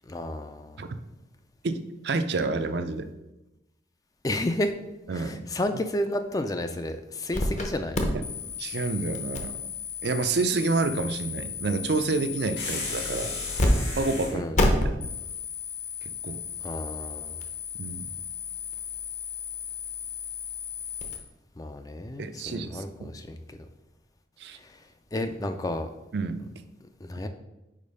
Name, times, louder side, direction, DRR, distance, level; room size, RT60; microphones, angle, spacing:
voice 1, 0.1-0.9 4.2-4.7 5.1-8.0 14.3-14.6 16.6-17.4 21.6-23.6 24.6-24.8 25.1-25.9 27.0-27.3, left 1 dB, 20° left, 8 dB, 0.4 m, -31 dB
voice 2, 1.6-3.1 5.1-5.5 8.1-8.2 8.6-9.6 10.0-13.4 14.0-14.5 14.8-15.1 16.0-16.4 17.8-18.1 22.2-23.1 24.4-24.6 26.1-26.5, right 3 dB, 60° right, 9 dB, 0.5 m, -29 dB
sound 1, 7.3-7.7 7.9-13.7 13.9-14.0 14.5-21.2, left 3 dB, 40° left, 0.8 m, -32 dB
sound 2, 12.6-14.4, left 3 dB, 70° left, 1.9 m, -34 dB
5.1 x 4.6 x 5.4 m, 0.97 s
head